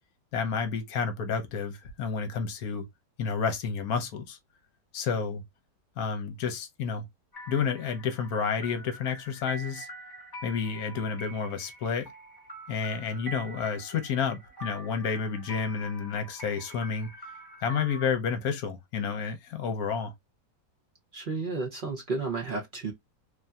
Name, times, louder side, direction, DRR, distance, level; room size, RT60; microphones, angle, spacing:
voice 1, 0.3-2.9 3.2-4.4 4.9-5.4 6.0-7.0 7.5-9.9 10.4-12.1 12.7-17.1 17.6-20.1, left 6 dB, 65° left, 1.2 m, -30 dB
sound 1, 7.3-18.1, right 1 dB, 15° left, 1.5 m, -45 dB
voice 2, 21.1-22.9, right 3 dB, 55° right, 0.6 m, -32 dB
3.3 x 2.6 x 2.3 m
omnidirectional pair, 1.9 m